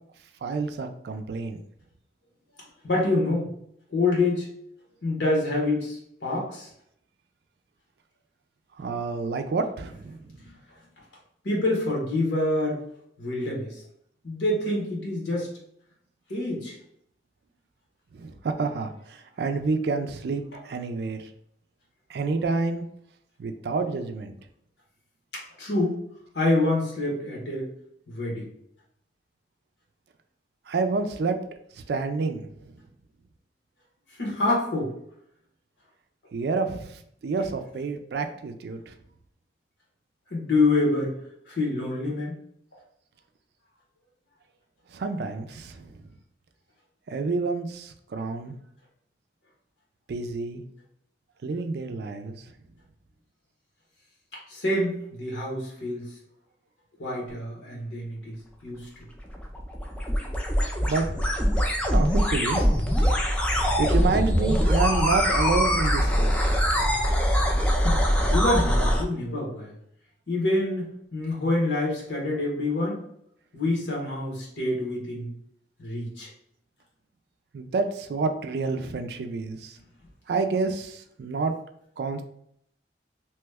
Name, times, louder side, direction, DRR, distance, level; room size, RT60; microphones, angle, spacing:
voice 1, 0.4-1.6 8.8-10.2 18.1-21.3 22.1-22.8 23.4-24.3 30.7-31.4 31.9-32.5 36.3-38.9 44.9-45.9 47.1-48.6 50.1-50.6 51.4-52.4 60.8-61.1 61.9-63.2 63.8-66.6 77.5-79.8 80.3-81.5 82.0-82.2, right 4 dB, 65° right, 7 dB, 0.4 m, -28 dB
voice 2, 2.8-3.5 3.9-4.5 5.0-6.7 10.4-10.5 11.4-12.8 13.2-13.8 14.2-15.5 16.3-16.8 22.1-22.2 25.3-26.0 26.3-27.7 28.1-28.5 34.1-34.9 40.3-41.1 41.5-42.4 54.3-56.1 57.0-58.4 58.6-58.9 67.8-69.7 70.3-73.0 73.5-75.3 75.8-76.3, left 2 dB, 90° left, -3 dB, 1.1 m, -26 dB
sound 1, 59.2-69.0, equal, 5° left, 0.3 m, -23 dB
2.9 x 2.2 x 3.4 m, 0.70 s
head